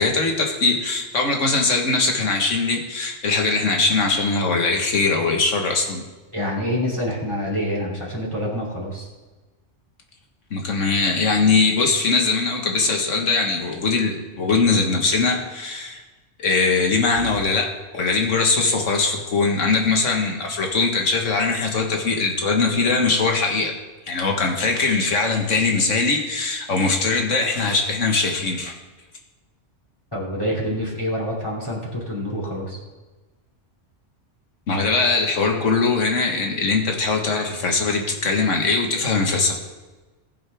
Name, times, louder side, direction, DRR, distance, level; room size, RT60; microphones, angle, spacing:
voice 1, 0.0-6.0 10.5-16.0 16.4-23.8 24.1-28.8 34.7-39.6, left 4 dB, 80° left, 2 dB, 1.8 m, -21 dB
voice 2, 6.3-9.1 17.2-17.3 30.1-32.8, equal, 20° left, -4 dB, 3.0 m, -26 dB
20.0 x 7.9 x 3.5 m, 1.2 s
omnidirectional pair, 1.3 m